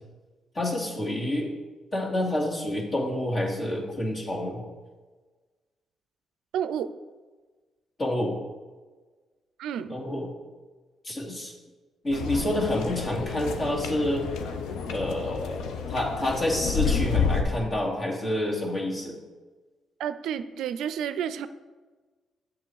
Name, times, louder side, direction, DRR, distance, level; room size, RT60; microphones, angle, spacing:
voice 1, 0.5-1.5 1.9-4.6 8.0-8.4 9.9-10.3 11.0-11.5 12.0-14.3 14.9-19.1, left 1 dB, 45° left, -2 dB, 2.5 m, -28 dB
voice 2, 6.5-6.9 9.6-10.0 20.0-21.5, right 9 dB, 80° right, 12 dB, 0.4 m, -30 dB
sound 1, 12.1-17.4, left 6 dB, 85° left, 0.7 m, -30 dB
7.5 x 6.3 x 4.7 m, 1.3 s
supercardioid pair, 60°, 0 cm